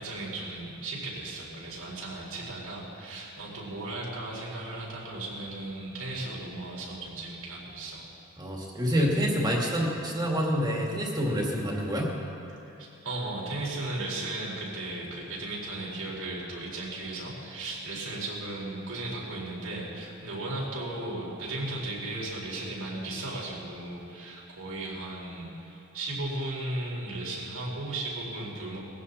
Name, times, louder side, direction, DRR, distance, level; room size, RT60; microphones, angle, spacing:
voice 1, 0.0-8.1 12.7-28.8, right 2 dB, 90° right, -4 dB, 4.6 m, -36 dB
voice 2, 8.4-12.1, equal, 20° right, -2 dB, 2.3 m, -27 dB
20.5 x 15.5 x 4.3 m, 2.8 s
head